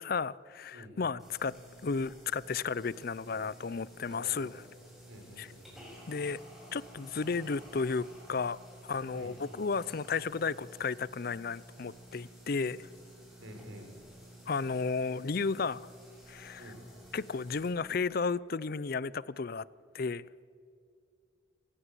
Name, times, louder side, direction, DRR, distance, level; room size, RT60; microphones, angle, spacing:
voice 1, 0.0-1.6 1.8-4.6 5.4-5.5 6.1-6.4 6.7-12.9 14.5-15.9 16.3-16.7 17.1-19.7 19.9-20.2, left 4 dB, 50° left, 0.5 m, -33 dB
voice 2, 0.7-1.1 4.1-4.5 5.1-5.7 9.1-9.4 13.4-13.9 16.6-16.8, equal, 80° right, 4.9 m, -49 dB
sound 1, 1.2-17.7, right 1 dB, ahead, 7.0 m, -53 dB
27.0 x 16.0 x 8.3 m
head